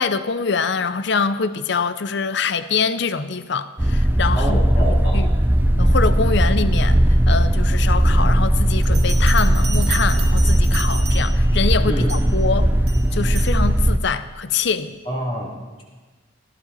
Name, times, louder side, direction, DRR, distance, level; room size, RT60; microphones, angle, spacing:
voice 1, 0.0-5.3 5.8-7.0 7.3-12.7 13.1-15.0, left 5 dB, 60° left, 13 dB, 0.6 m, -24 dB
sound 1, 3.8-14.0, right 1 dB, 10° right, 0.4 m, -17 dB
voice 2, 4.3-5.3 11.8-12.2 12.5-12.6 15.0-15.8, equal, 25° left, -3 dB, 2.9 m, -28 dB
Bell, 8.8-11.5 12.1-12.4 12.9-13.6, right 7 dB, 50° right, 2.0 m, -33 dB
20.0 x 15.5 x 4.1 m, 1.3 s
head